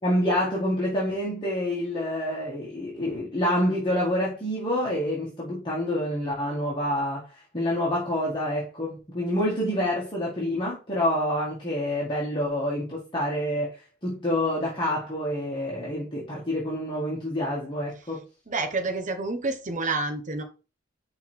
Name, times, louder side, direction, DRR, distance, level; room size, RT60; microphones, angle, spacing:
voice 1, 0.0-18.2, left 1 dB, 25° left, 1.8 m, -27 dB
voice 2, 18.5-20.4, right 3 dB, 40° right, 1.0 m, -28 dB
5.6 x 3.9 x 4.5 m
head